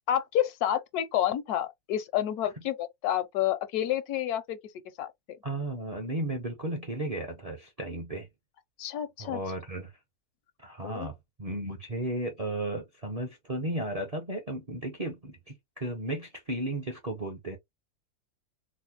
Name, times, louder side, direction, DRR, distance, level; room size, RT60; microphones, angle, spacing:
voice 1, 0.1-4.6 5.0-5.1 8.8-9.4 10.8-11.1, left 11 dB, 80° left, 1.1 m, -29 dB
voice 2, 5.4-8.3 9.2-9.9 10.6-17.6, right 1 dB, 40° right, 0.5 m, -34 dB
4.1 x 2.0 x 2.8 m
omnidirectional pair, 1.6 m